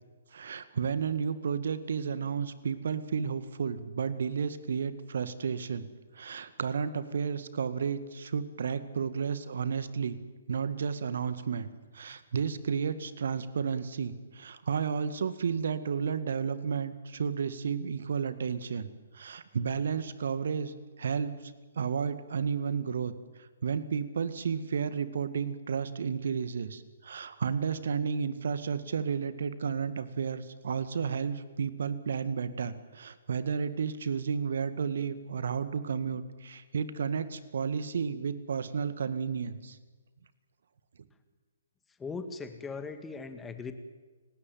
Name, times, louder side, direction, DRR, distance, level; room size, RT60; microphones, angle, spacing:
voice 1, 0.3-5.9 6.1-10.2 10.5-23.1 23.6-39.8, right 6 dB, 60° right, 12 dB, 1.9 m, -32 dB
voice 2, 42.0-43.7, left 4 dB, 10° left, 8 dB, 2.0 m, -39 dB
30.0 x 17.0 x 9.4 m, 1.3 s
figure-of-eight pair, 130°, 0 cm